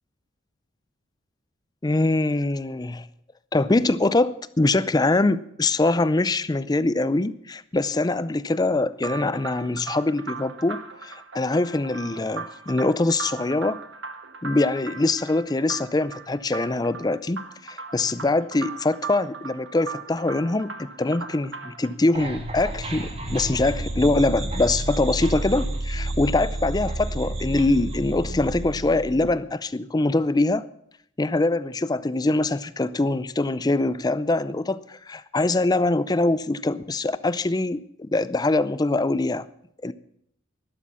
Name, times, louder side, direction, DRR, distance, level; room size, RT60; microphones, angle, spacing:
voice 1, 1.8-3.1 3.5-13.8 14.4-30.7 31.2-39.5 39.8-39.9, left 2 dB, 20° left, 16 dB, 0.4 m, -23 dB
sound 1, 9.0-21.9, right 5 dB, 60° right, 1.5 m, -38 dB
sound 2, 22.1-29.3, right 1 dB, 30° right, 2.1 m, -30 dB
12.5 x 12.0 x 7.0 m, 0.71 s
head